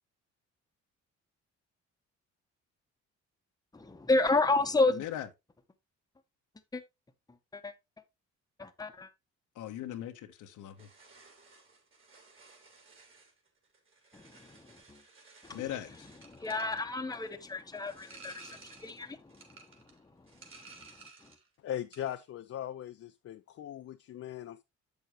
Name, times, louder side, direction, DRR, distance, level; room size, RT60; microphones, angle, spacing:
voice 1, 3.7-5.0 6.7-6.8 7.5-7.7 8.6-9.1 14.1-15.0 15.4-15.7 16.2-19.6 20.8-20.9, left 3 dB, 10° left, 0.9 m, -31 dB
voice 2, 4.9-5.3 9.6-10.9 15.5-15.9, left 12 dB, 80° left, 1.1 m, -39 dB
sound 1, 10.8-21.5 21.7-22.2, right 3 dB, 40° right, 3.0 m, -56 dB
voice 3, 21.6-24.6, left 11 dB, 50° left, 0.5 m, -39 dB
7.7 x 6.8 x 3.0 m
cardioid pair, 90°, 30 cm